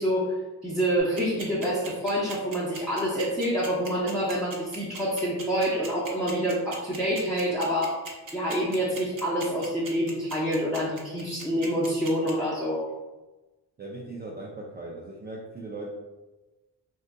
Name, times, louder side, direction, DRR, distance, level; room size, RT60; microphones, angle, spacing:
voice 1, 0.0-8.0 8.3-12.8, equal, ahead, -9 dB, 0.7 m, -27 dB
sound 1, 1.0-12.3, right 3 dB, 50° right, 0.8 m, -39 dB
voice 2, 13.8-15.9, right 2 dB, 25° right, -2 dB, 0.4 m, -38 dB
3.7 x 2.5 x 2.2 m, 1.1 s
cardioid pair, 75°, 42 cm